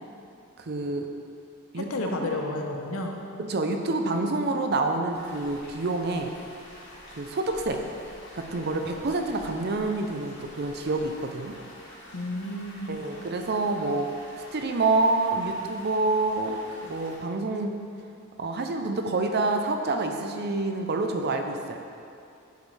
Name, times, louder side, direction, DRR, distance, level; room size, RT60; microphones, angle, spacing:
voice 1, 0.6-1.1 1.7-1.9 3.4-6.4 7.1-7.8 8.3-11.6 12.9-14.1 14.5-17.7 18.4-21.8, right 2 dB, 50° right, 5 dB, 0.6 m, -27 dB
voice 2, 1.7-3.2 12.1-13.1, left 1 dB, 70° left, 2 dB, 0.8 m, -31 dB
sound 1, 5.1-17.2, left 1 dB, 55° left, 1.7 m, -48 dB
10.5 x 5.2 x 3.3 m, 2.5 s
head